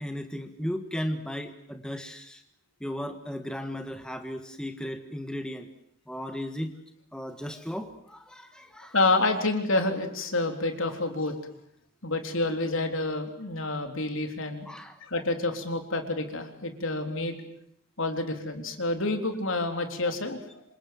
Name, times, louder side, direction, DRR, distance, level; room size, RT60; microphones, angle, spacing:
voice 1, 0.0-2.4 2.8-5.7 6.1-6.7 7.1-8.9 14.7-15.0, equal, 5° left, 6 dB, 1.6 m, -35 dB
voice 2, 8.9-11.4 12.0-14.7 15.1-17.4 18.0-20.6, left 2 dB, 70° left, 6 dB, 3.8 m, -28 dB
28.0 x 26.0 x 7.8 m, 0.69 s
head